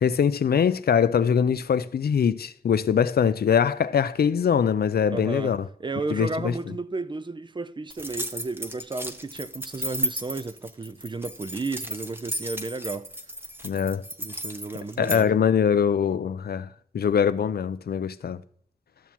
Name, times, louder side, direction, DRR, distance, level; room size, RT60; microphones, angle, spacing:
voice 1, 0.0-5.7 6.1-6.5 13.6-14.0 15.0-16.7 16.9-18.4, left 7 dB, 85° left, 0.4 m, -22 dB
voice 2, 5.1-5.5 5.8-13.1 14.2-15.3, right 3 dB, 30° right, 0.4 m, -33 dB
sound 1, 7.9-15.2, equal, 15° right, 0.9 m, -34 dB
12.5 x 7.0 x 2.9 m
wide cardioid pair, 70°, 16 cm